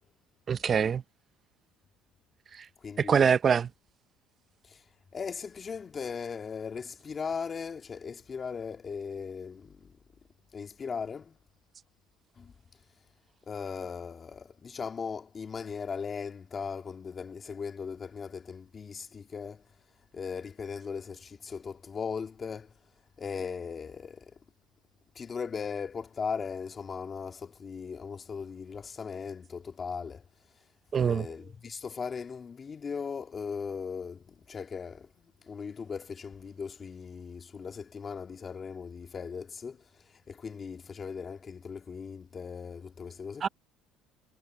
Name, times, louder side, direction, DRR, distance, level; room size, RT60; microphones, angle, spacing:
voice 1, 0.5-1.0 2.5-2.7 3.0-3.7 30.9-31.3 43.4-43.5, right 7 dB, 35° right, 0.6 m, -24 dB
voice 2, 2.8-3.2 4.7-4.8 5.1-9.9 10.5-11.4 12.4-12.5 13.5-19.6 20.1-22.7 23.2-24.3 25.2-30.2 31.0-39.9 40.3-43.5, left 6 dB, 30° left, 2.1 m, -38 dB
cardioid pair, 120°, 0 cm